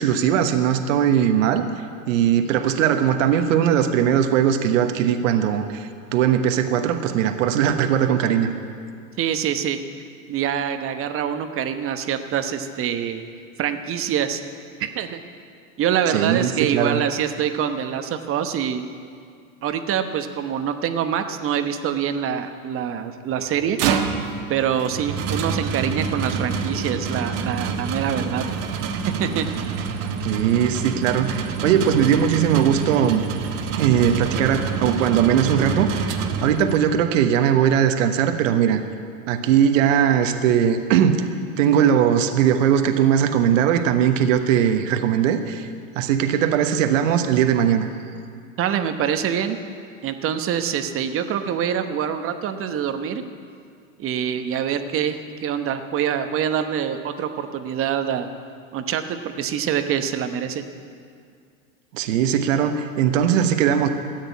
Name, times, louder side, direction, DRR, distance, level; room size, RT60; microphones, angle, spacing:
voice 1, 0.0-1.6 2.1-8.5 16.1-17.0 30.2-33.2 33.7-36.1 36.4-38.8 39.3-41.3 41.6-45.7 45.9-47.9 61.9-63.9, right 9 dB, 65° right, 7 dB, 1.3 m, -19 dB
voice 2, 9.2-9.8 10.3-13.2 13.6-14.4 14.8-15.2 15.8-18.8 19.6-23.8 24.5-28.4 29.2-29.5 29.8-29.9 48.6-49.6 50.0-53.2 54.0-58.3 58.7-60.6, right 8 dB, 30° right, 8 dB, 1.1 m, -25 dB
sound 1, 23.5-36.9, right 5 dB, 50° right, 1.5 m, -27 dB
13.5 x 9.5 x 9.4 m, 2.2 s
hypercardioid pair, 110°, 42 cm